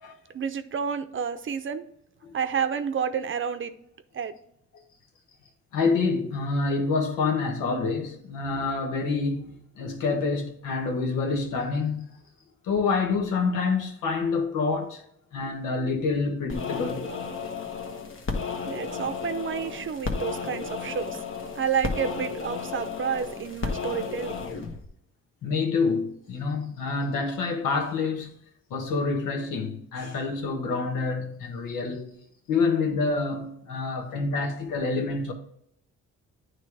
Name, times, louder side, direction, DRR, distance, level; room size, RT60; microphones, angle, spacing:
voice 1, 0.3-1.8 2.3-3.7 4.1-4.3 18.7-21.2 21.6-24.4, right 7 dB, 40° right, 0.7 m, -30 dB
voice 2, 5.7-12.0 12.6-15.0 15.3-17.1 25.4-28.3 28.7-32.1 32.5-35.3, left 4 dB, 85° left, 1.4 m, -27 dB
sound 1, 16.5-24.8, left 5 dB, 40° left, 1.1 m, -33 dB
9.2 x 3.2 x 4.8 m
cardioid pair, 90°, 30 cm